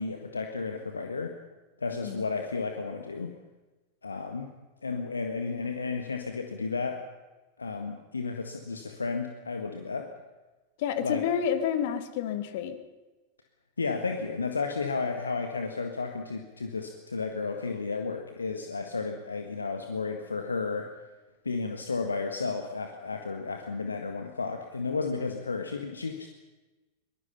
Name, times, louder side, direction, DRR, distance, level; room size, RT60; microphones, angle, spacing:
voice 1, 0.0-1.3 1.8-3.4 4.0-4.5 4.8-7.0 7.6-10.1 11.0-11.2 13.8-20.9 21.4-26.3, left 4 dB, 75° left, 5 dB, 1.7 m, -33 dB
voice 2, 10.8-12.7, left 8 dB, 50° left, 10 dB, 2.2 m, -29 dB
23.5 x 20.5 x 5.7 m, 1.2 s
figure-of-eight pair, 90°, 0 cm